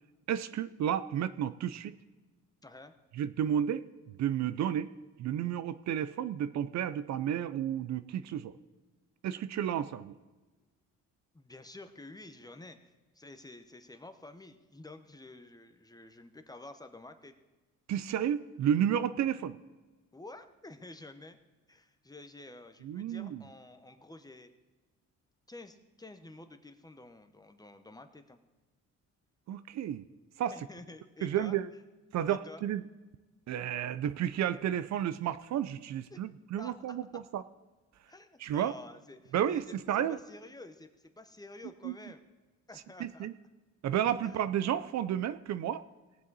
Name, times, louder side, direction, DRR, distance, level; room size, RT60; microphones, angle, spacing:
voice 1, 0.3-2.0 3.2-4.9 5.2-8.5 9.2-10.1 17.9-19.6 22.8-23.4 29.5-30.1 30.4-30.5 31.2-31.7 32.1-32.8 33.5-37.4 38.4-38.7 39.3-40.2 41.8-41.9 43.0-43.3 43.8-45.9, right 10 dB, 65° right, 14 dB, 0.5 m, -32 dB
voice 2, 2.6-2.9 11.3-17.3 20.1-21.4 21.7-24.5 25.5-28.4 30.5-31.6 32.3-32.6 36.1-36.2 36.6-37.0 38.1-39.6 40.1-42.2 42.7-43.3 44.2-44.4, left 2 dB, 10° left, 8 dB, 1.0 m, -50 dB
18.0 x 7.3 x 4.1 m, 1.2 s
cardioid pair, 90°, 30 cm